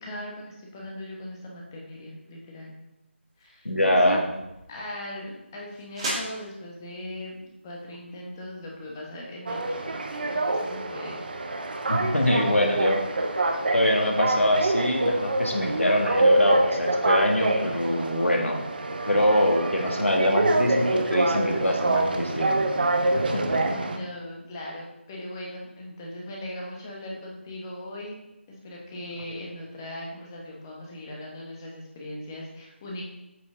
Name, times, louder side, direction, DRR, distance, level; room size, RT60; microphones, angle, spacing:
voice 1, 0.0-2.8 3.4-4.2 4.7-10.0 10.2-11.2 23.9-28.2 28.5-33.0, left 1 dB, 15° left, -2 dB, 1.1 m, -39 dB
sound 1, 3.3-9.2, right 1 dB, 25° right, 1.9 m, -40 dB
voice 2, 3.6-4.2 11.9-13.0 13.7-18.6 19.1-22.5 23.1-23.6, equal, 90° left, 1 dB, 1.4 m, -24 dB
sound 2, 9.5-24.0, right 2 dB, 45° right, 0.8 m, -26 dB
8.3 x 5.2 x 3.8 m, 0.93 s
figure-of-eight pair, 165°, 7 cm